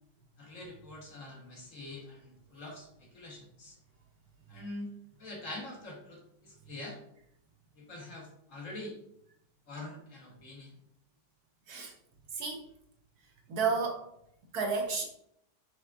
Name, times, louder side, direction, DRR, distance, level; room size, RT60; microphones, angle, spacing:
voice 1, 0.4-3.8 4.5-4.9 5.2-7.0 7.8-9.0 9.7-10.7, left 2 dB, 55° left, -1 dB, 1.2 m, -45 dB
voice 2, 13.5-14.1 14.5-15.0, right 5 dB, 65° right, 1 dB, 1.1 m, -31 dB
5.9 x 3.6 x 2.3 m, 0.73 s
omnidirectional pair, 1.9 m